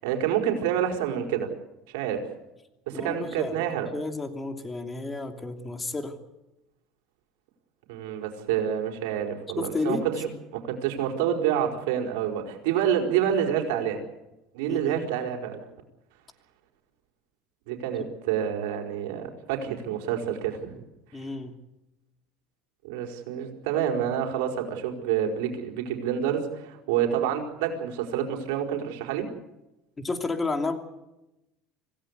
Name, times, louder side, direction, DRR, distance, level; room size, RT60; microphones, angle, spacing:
voice 1, 0.0-1.5 1.9-2.3 2.9-3.9 7.9-14.0 14.5-15.6 17.7-20.8 22.8-29.3, right 9 dB, 85° right, 3 dB, 4.7 m, -28 dB
voice 2, 2.9-3.7 3.9-6.1 9.6-10.0 14.7-15.0 21.1-21.5 30.0-30.8, left 3 dB, 15° left, 5 dB, 2.8 m, -31 dB
26.5 x 17.0 x 8.2 m, 0.94 s
supercardioid pair, 125°, 0 cm